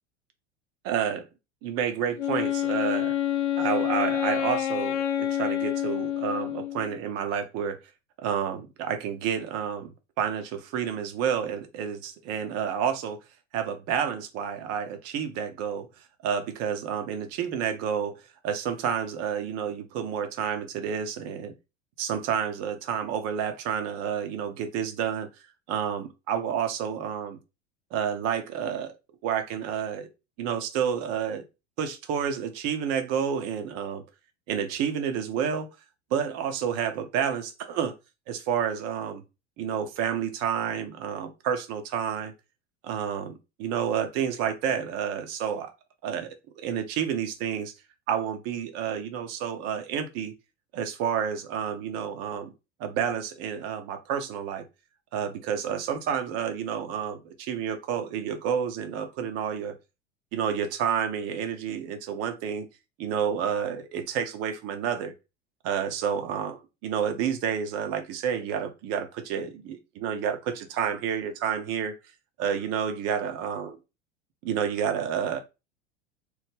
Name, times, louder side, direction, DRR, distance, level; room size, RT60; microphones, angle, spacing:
voice 1, 0.8-1.3 1.6-3.1 3.6-7.8 8.2-13.2 13.5-15.9 16.2-21.5 22.0-25.3 25.7-27.4 27.9-29.0 29.2-30.1 30.4-31.4 31.8-34.0 34.5-35.7 36.1-37.9 38.3-39.2 39.6-42.3 42.8-45.7 46.0-46.3 46.6-47.7 48.1-50.3 50.7-52.5 52.8-54.6 55.1-59.7 60.3-62.7 63.0-65.1 65.6-72.0 72.4-73.8 74.4-75.4, right 8 dB, 45° right, 0.7 m, -30 dB
Wind instrument woodwind instrument, 2.2-7.0, left 11 dB, 80° left, 0.5 m, -28 dB
3.0 x 2.1 x 3.5 m
hypercardioid pair, 90°, 35 cm